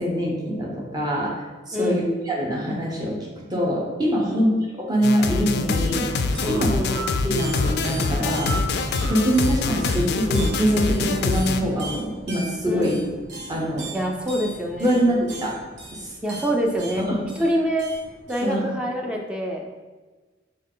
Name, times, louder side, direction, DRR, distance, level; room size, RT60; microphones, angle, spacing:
voice 1, 0.0-1.3 1.7-6.1 6.5-6.7 7.2-8.5 9.0-13.0 13.5-13.9 14.8-15.5 15.9-16.1 17.0-17.2 18.4-18.6, equal, 20° right, -3 dB, 0.9 m, -24 dB
voice 2, 1.7-2.1 4.2-4.5 6.4-7.1 12.6-13.0 13.9-15.0 16.2-17.1 17.4-17.9 18.3-19.7, equal, 5° right, 0 dB, 0.5 m, -26 dB
sound 1, 5.0-11.6, left 4 dB, 60° left, 0.3 m, -25 dB
sound 2, 6.1-18.5, right 1 dB, 70° right, 1.0 m, -36 dB
4.3 x 3.2 x 3.7 m, 1.3 s
head